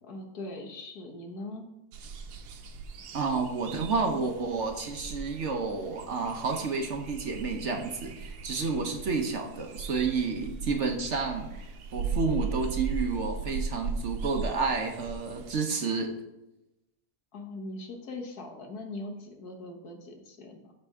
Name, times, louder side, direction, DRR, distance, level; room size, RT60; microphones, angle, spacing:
voice 1, 0.0-1.7 17.3-20.7, left 2 dB, 75° left, 2 dB, 1.8 m, -41 dB
sound 1, 1.9-15.5, right 4 dB, 90° right, 1.3 m, -38 dB
voice 2, 3.1-16.2, right 4 dB, 55° right, 3 dB, 1.1 m, -30 dB
12.5 x 4.4 x 3.6 m, 0.96 s
omnidirectional pair, 1.6 m